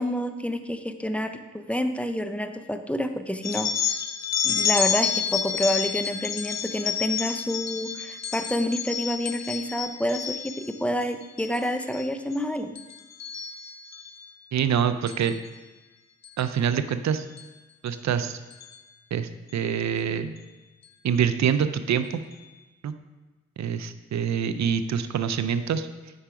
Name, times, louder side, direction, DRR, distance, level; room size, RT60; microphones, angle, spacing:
voice 1, 0.0-3.7 4.4-12.8, equal, 5° left, 7 dB, 0.7 m, -28 dB
sound 1, 3.4-10.7 11.2-11.6 11.9-12.4 12.8-14.1 15.1-15.3 16.2-16.4 17.4-17.5 17.9-18.0 18.5-18.7, left 8 dB, 60° left, 0.8 m, -29 dB
voice 2, 14.5-15.4 16.4-17.2 17.8-18.4 19.1-20.3 21.0-22.2 22.8-22.9 23.6-25.9, right 8 dB, 65° right, 11 dB, 0.6 m, -25 dB
8.8 x 4.8 x 5.0 m, 1.2 s
cardioid pair, 55°, 31 cm